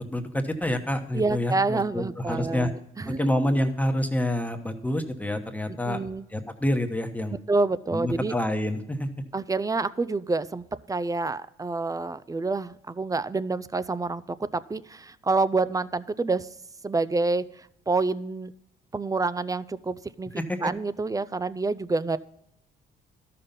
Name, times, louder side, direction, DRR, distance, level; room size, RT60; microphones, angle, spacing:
voice 1, 0.0-2.7 3.1-6.0 6.3-7.3 7.9-9.1 20.4-20.6, left 1 dB, 10° left, 5 dB, 1.1 m, -27 dB
voice 2, 1.1-3.3 5.9-6.3 7.3-8.3 9.3-16.5 16.8-18.5 18.9-22.2, right 3 dB, 15° right, 16 dB, 0.4 m, -28 dB
13.0 x 5.8 x 5.3 m, 0.78 s
cardioid pair, 90°, 20 cm